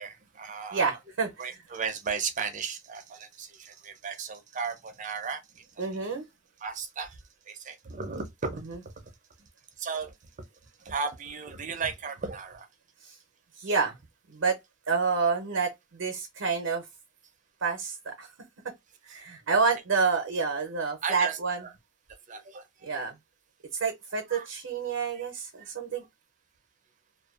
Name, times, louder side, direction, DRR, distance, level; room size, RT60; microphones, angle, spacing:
voice 1, 0.0-1.0 1.4-5.9 6.6-7.2 7.5-8.6 9.8-10.1 10.8-12.7 19.1-19.2 19.6-19.7 21.0-21.7 22.3-22.7 22.9-23.0 24.3-24.5 25.6-25.7, right 5 dB, 40° right, 0.5 m, -35 dB
voice 2, 0.7-1.3 5.8-6.2 13.1-13.2 13.6-14.0 14.3-14.6 14.9-16.8 17.6-18.3 19.1-21.6 22.8-23.1 23.8-26.0, right 5 dB, 85° right, 0.6 m, -28 dB
2.5 x 2.2 x 2.4 m
head